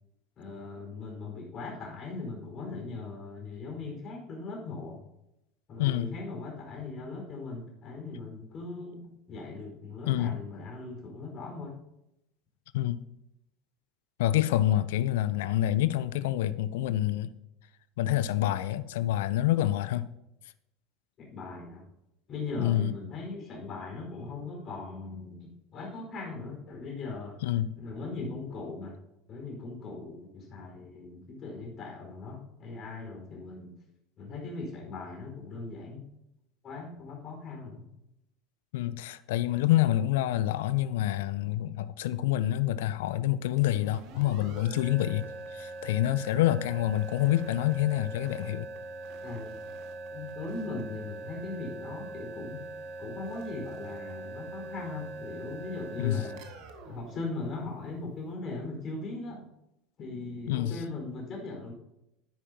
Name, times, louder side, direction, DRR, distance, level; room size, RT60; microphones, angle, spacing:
voice 1, 0.4-5.0 5.7-11.8 21.2-21.9 22.3-27.4 27.8-29.0 29.3-33.7 34.2-36.1 36.6-37.8 49.2-49.5 50.1-52.6 53.0-56.4 56.8-59.5 60.0-61.7, left 3 dB, 40° left, 0 dB, 4.5 m, -39 dB
voice 2, 5.8-6.1 10.1-10.4 12.7-13.0 14.2-17.3 18.0-20.1 22.6-22.9 27.4-27.7 38.7-45.3 45.5-48.7 56.0-56.3 60.5-60.7, left 13 dB, 65° left, 15 dB, 0.5 m, -27 dB
sound 1, 43.5-58.1, right 2 dB, 55° right, 1.7 m, -42 dB
13.0 x 10.0 x 2.8 m, 0.85 s
figure-of-eight pair, 70°, 0 cm